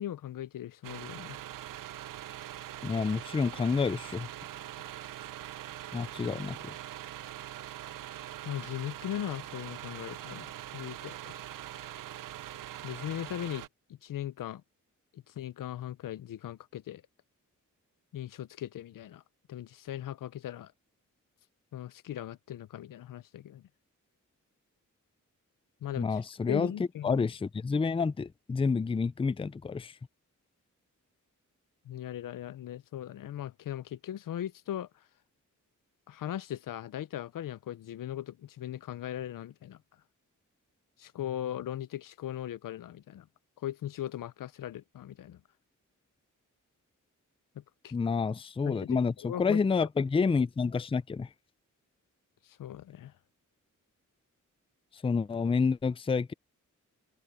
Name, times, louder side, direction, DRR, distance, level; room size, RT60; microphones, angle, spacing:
voice 1, 0.0-1.4 8.4-11.4 12.8-13.7 14.0-14.6 15.1-17.0 18.1-19.2 19.5-20.7 21.7-23.6 25.8-26.2 26.5-27.3 31.9-34.9 36.1-39.8 41.0-43.3 43.6-45.4 47.6-47.9 48.7-49.9 52.5-53.1, left 11 dB, 90° left, 0.6 m, -39 dB
sound 1, 0.8-13.7, right 13 dB, 90° right, 0.5 m, -43 dB
voice 2, 2.8-4.3 5.9-6.7 26.0-26.7 27.0-29.9 47.9-51.3 55.0-56.3, left 5 dB, 20° left, 0.4 m, -29 dB
wide cardioid pair, 120°, 32 cm